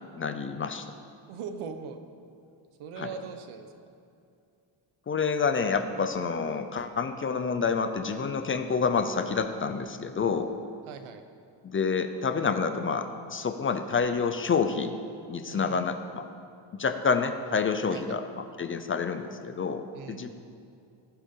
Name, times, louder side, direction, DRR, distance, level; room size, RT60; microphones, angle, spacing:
voice 1, 0.1-0.8 3.0-3.1 5.1-10.5 11.6-14.9 15.3-16.3 16.7-20.3, left 5 dB, 25° left, 8 dB, 0.5 m, -28 dB
voice 2, 1.3-2.0 2.8-3.7 10.9-11.2 15.5-15.9 17.9-18.2 19.9-20.3, right 6 dB, 85° right, 8 dB, 1.2 m, -40 dB
19.0 x 11.0 x 3.8 m, 2.5 s
cardioid pair, 170°, 48 cm